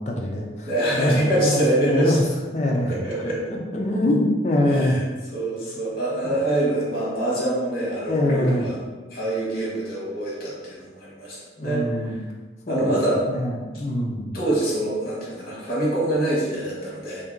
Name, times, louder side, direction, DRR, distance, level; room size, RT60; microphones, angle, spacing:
voice 1, 0.0-2.1 2.5-5.0 6.2-6.3 8.1-8.6 11.6-12.2 12.7-12.9 13.3-14.4, left 1 dB, 35° left, 0 dB, 0.4 m, -24 dB
voice 2, 0.6-2.2 2.9-3.4 4.7-5.0 5.3-8.8 9.1-12.2 12.7-13.2 14.3-17.2, right 1 dB, 55° left, -5 dB, 1.1 m, -25 dB
2.8 x 2.7 x 3.5 m, 1.3 s
head